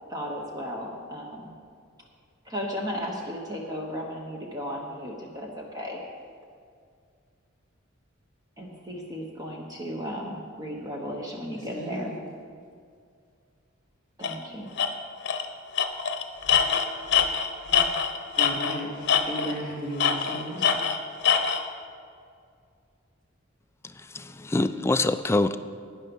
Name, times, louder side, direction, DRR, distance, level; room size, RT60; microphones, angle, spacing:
voice 1, 0.1-1.5 2.4-6.0 8.6-12.1 14.2-14.7, equal, 20° right, -1 dB, 1.1 m, -35 dB
voice 2, 11.5-12.1 18.4-20.7, equal, 35° right, -5 dB, 3.2 m, -34 dB
Tools, 14.2-14.4 14.8-14.9 15.3-15.5 15.8-18.8 19.1-19.6 20.0-21.6, left 7 dB, 55° left, 0.8 m, -24 dB
voice 3, 23.8-25.6, left 2 dB, 15° left, 10 dB, 0.3 m, -25 dB
12.0 x 9.6 x 5.4 m, 2.2 s
head